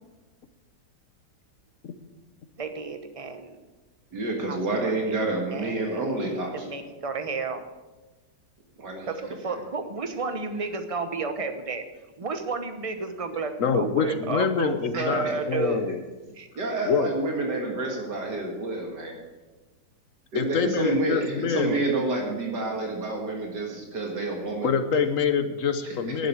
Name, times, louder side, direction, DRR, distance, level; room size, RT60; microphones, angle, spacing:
voice 1, 2.6-3.6 4.5-5.1 5.5-6.1 6.5-7.6 9.0-11.8 12.2-15.8 16.3-16.5, right 4 dB, 25° right, 7 dB, 0.7 m, -32 dB
voice 2, 4.1-6.7 8.8-9.1 14.9-15.4 16.6-19.2 20.3-24.7 25.8-26.2, right 2 dB, 65° right, 0 dB, 2.4 m, -29 dB
voice 3, 13.6-16.0 16.9-17.1 20.3-21.8 24.6-26.3, left 6 dB, 55° left, 9 dB, 1.1 m, -25 dB
10.5 x 7.7 x 8.4 m, 1.2 s
omnidirectional pair, 2.0 m